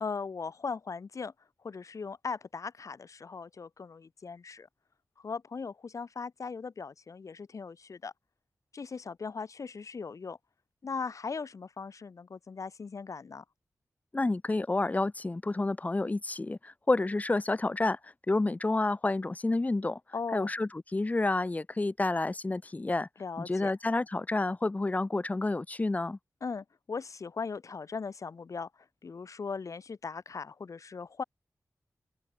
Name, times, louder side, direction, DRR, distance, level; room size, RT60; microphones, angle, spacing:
voice 1, 0.0-1.3 1.6-4.7 5.2-8.1 8.7-10.4 10.8-13.4 20.1-20.5 23.2-23.7 26.4-28.7 29.0-31.2, left 5 dB, 65° left, 1.1 m, -38 dB
voice 2, 14.1-20.0 20.3-23.1 23.4-26.2, left 2 dB, 25° left, 0.8 m, -29 dB
open air
wide cardioid pair, 110°, 6 cm